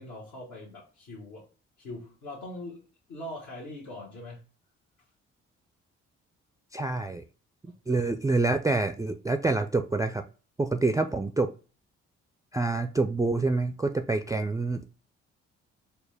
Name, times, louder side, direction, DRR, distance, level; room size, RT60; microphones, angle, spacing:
voice 1, 0.0-1.5 1.8-4.4 7.6-8.0, left 1 dB, 70° left, -7 dB, 1.4 m, -42 dB
voice 2, 6.7-7.2 7.9-10.2 10.6-11.5 12.5-15.0, right 3 dB, 10° right, 7 dB, 0.3 m, -27 dB
4.2 x 2.2 x 3.3 m, 0.35 s
hypercardioid pair, 45°, 31 cm